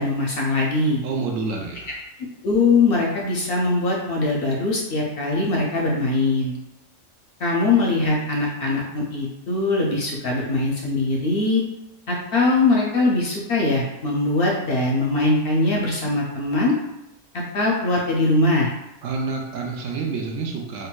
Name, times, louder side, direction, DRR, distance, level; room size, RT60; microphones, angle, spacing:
voice 1, 0.0-1.0 2.4-6.6 7.4-11.6 12.1-16.7 17.3-18.7, left 2 dB, 60° left, -2 dB, 0.6 m, -21 dB
voice 2, 1.0-2.0 19.0-20.9, right 4 dB, 80° right, 0 dB, 1.0 m, -28 dB
3.7 x 2.2 x 2.2 m, 0.91 s
omnidirectional pair, 1.3 m